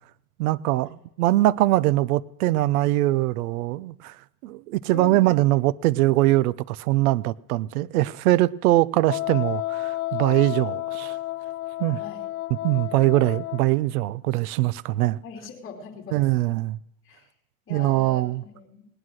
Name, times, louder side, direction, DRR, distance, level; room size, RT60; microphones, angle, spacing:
voice 1, 0.4-4.2 4.4-11.2 11.8-12.0 12.6-15.2 16.1-16.8 17.7-18.4, right 17 dB, 70° right, 0.7 m, -22 dB
voice 2, 4.9-5.5 12.0-12.3 15.2-16.2 17.0-17.3 17.7-18.9, left 6 dB, 30° left, 2.9 m, -41 dB
Wind instrument woodwind instrument, 9.0-13.8, left 16 dB, 75° left, 0.8 m, -31 dB
19.0 x 9.6 x 6.3 m
supercardioid pair, 130°, 45 cm